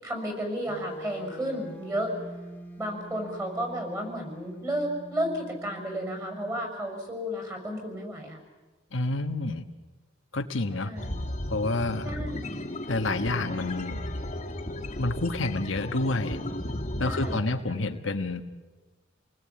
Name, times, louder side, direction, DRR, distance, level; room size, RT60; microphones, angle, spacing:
voice 1, 0.0-2.1 2.8-8.4 10.7-11.2 12.0-12.7 17.0-17.5, equal, 15° right, 4 dB, 6.2 m, -33 dB
sound 1, 0.7-6.7, equal, 10° left, 1.8 m, -44 dB
voice 2, 8.9-9.6 10.3-10.9 11.5-12.1 12.9-14.0 15.0-16.4 17.0-18.4, left 2 dB, 75° left, 6 dB, 1.4 m, -28 dB
sound 2, 11.0-17.4, left 1 dB, 35° left, 2.1 m, -34 dB
28.5 x 20.0 x 8.8 m, 1.2 s
head